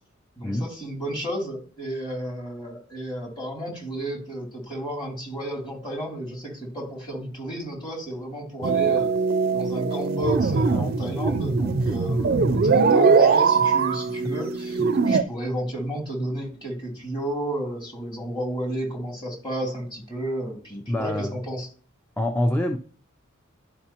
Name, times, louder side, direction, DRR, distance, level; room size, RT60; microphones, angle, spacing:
voice 1, 0.4-9.1 9.5-21.7, right 1 dB, 25° left, -1 dB, 2.9 m, -32 dB
sound 1, 8.6-15.2, right 5 dB, 50° right, 0.5 m, -21 dB
voice 2, 20.9-21.4 22.2-22.8, left 1 dB, 10° left, 6 dB, 0.5 m, -25 dB
11.5 x 5.1 x 2.9 m, 0.42 s
head